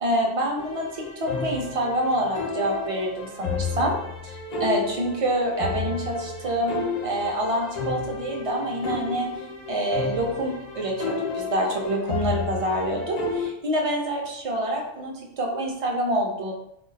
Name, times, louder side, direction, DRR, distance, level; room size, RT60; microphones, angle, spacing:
voice 1, 0.0-4.0 4.2-9.3 9.7-16.5, right 1 dB, 50° right, 0 dB, 0.4 m, -27 dB
sound 1, 0.6-13.5, left 4 dB, 55° left, 0.4 m, -32 dB
2.3 x 2.2 x 3.8 m, 0.79 s
omnidirectional pair, 1.3 m